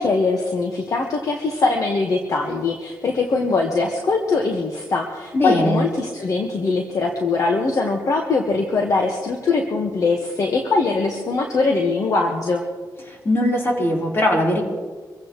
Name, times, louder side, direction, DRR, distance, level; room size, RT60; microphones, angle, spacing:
voice 1, 0.0-12.6, left 3 dB, 55° left, 2 dB, 1.5 m, -22 dB
voice 2, 5.3-5.8 13.1-14.6, left 1 dB, 35° left, -2 dB, 4.2 m, -20 dB
25.5 x 15.5 x 3.2 m, 1.4 s
cardioid pair, 105°, 7 cm